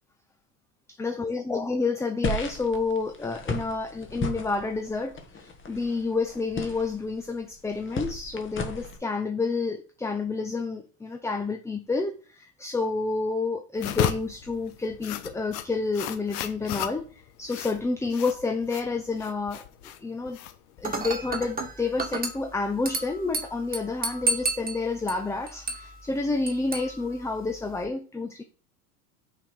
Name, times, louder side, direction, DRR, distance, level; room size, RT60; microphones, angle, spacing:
voice 1, 1.0-17.1 17.4-20.4 20.8-28.4, left 3 dB, 5° left, 0.5 m, -29 dB
sound 1, 2.2-9.0, left 2 dB, 30° left, 1.3 m, -35 dB
sound 2, 13.8-21.7, left 12 dB, 60° left, 0.9 m, -34 dB
Dishes pots and pans / Glass, 20.8-27.8, right 3 dB, 20° right, 1.4 m, -33 dB
5.8 x 4.2 x 4.6 m
hypercardioid pair, 75°, 43 cm